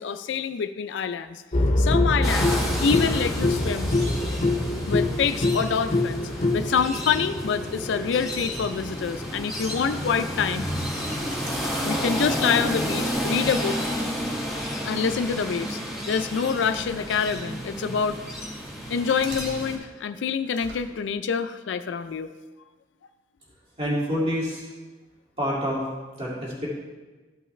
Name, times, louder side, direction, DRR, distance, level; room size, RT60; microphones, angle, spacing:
voice 1, 0.0-1.4 1.8-2.6 2.8-3.9 4.9-10.6 11.8-13.8 14.9-15.8 16.1-18.2 18.9-22.3, left 6 dB, 75° left, 10 dB, 0.4 m, -26 dB
sound 1, 1.5-13.4 14.8-14.9, left 2 dB, 35° left, 0.6 m, -26 dB
sound 2, 2.2-19.8, equal, ahead, 1.9 m, -31 dB
sound 3, 11.3-12.4 13.0-14.2 15.1-15.4 16.4-17.5 18.2-18.3 19.1-19.5 20.5-20.8, right 2 dB, 70° right, 1.7 m, -43 dB
voice 2, 23.8-24.6 25.4-25.9 26.2-26.7, equal, 35° right, -6 dB, 2.3 m, -27 dB
13.5 x 5.6 x 3.2 m, 1.3 s
head